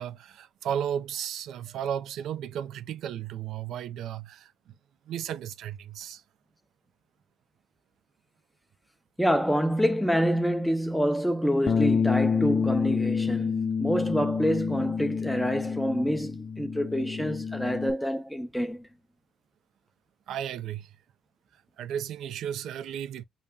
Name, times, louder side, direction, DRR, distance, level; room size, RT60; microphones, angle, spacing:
voice 1, 0.0-4.7 5.1-6.2 20.3-21.0 21.8-23.2, right 9 dB, 80° right, 0.4 m, -34 dB
voice 2, 9.2-18.9, equal, ahead, 0.8 m, -27 dB
Bass guitar, 11.7-17.9, left 6 dB, 40° left, 0.6 m, -28 dB
5.6 x 2.2 x 3.5 m
cardioid pair, 90°, 0 cm